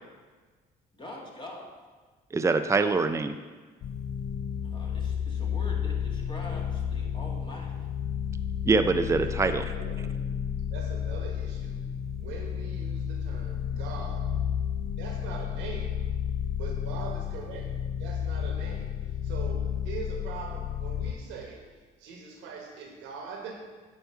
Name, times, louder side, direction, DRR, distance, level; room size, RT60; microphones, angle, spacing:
voice 1, 0.9-1.7 4.6-7.8 13.7-13.9, left 1 dB, 25° left, -2 dB, 2.0 m, -44 dB
voice 2, 2.3-3.4 8.7-9.6, right 4 dB, 15° right, 9 dB, 0.5 m, -24 dB
sound 1, 3.8-21.1, left 8 dB, 55° left, 0.6 m, -32 dB
voice 3, 9.2-10.4 10.7-11.8 12.2-14.4 15.0-16.0 16.6-17.7 18.0-18.9 19.2-21.6 22.0-23.5, right 5 dB, 85° right, 0 dB, 1.5 m, -42 dB
9.0 x 3.2 x 6.6 m, 1.4 s
supercardioid pair, 65°, 19 cm